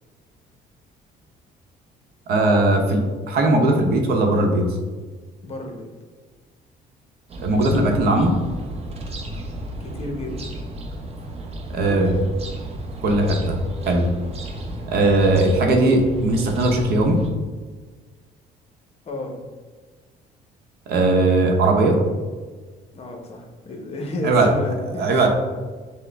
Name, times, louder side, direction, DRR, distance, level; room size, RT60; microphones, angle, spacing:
voice 1, 2.3-3.0 3.3-4.6 7.4-8.3 11.7-12.1 13.0-13.6 13.9-14.1 14.9-17.2 20.9-22.0 24.2-24.5 25.0-25.3, right 2 dB, 70° right, 2 dB, 0.8 m, -18 dB
voice 2, 5.4-5.9 9.8-10.6 11.8-12.2 19.1-19.4 22.9-25.3, left 1 dB, 35° left, 3 dB, 0.8 m, -32 dB
sound 1, 7.3-17.3, right 1 dB, 35° right, 0.6 m, -34 dB
6.1 x 2.1 x 3.3 m, 1.4 s
cardioid pair, 110°, 17 cm